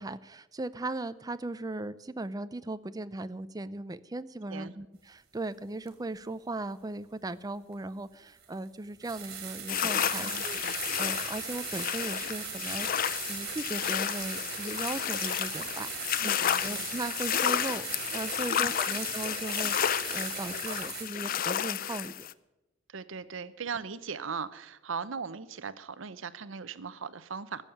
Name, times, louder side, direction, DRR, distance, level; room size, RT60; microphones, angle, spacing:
voice 1, 0.0-22.3, right 2 dB, 20° right, 13 dB, 0.5 m, -38 dB
sound 1, 5.9-6.0 7.7-7.8 8.4-8.5 9.0-21.0, right 8 dB, 50° right, 2.8 m, -39 dB
sound 2, 9.7-22.3, left 10 dB, 45° left, 0.4 m, -32 dB
voice 2, 10.2-10.8 16.2-16.9 18.6-18.7 22.9-27.6, right 5 dB, 70° right, 15 dB, 0.7 m, -39 dB
14.0 x 7.2 x 9.3 m, 0.99 s
head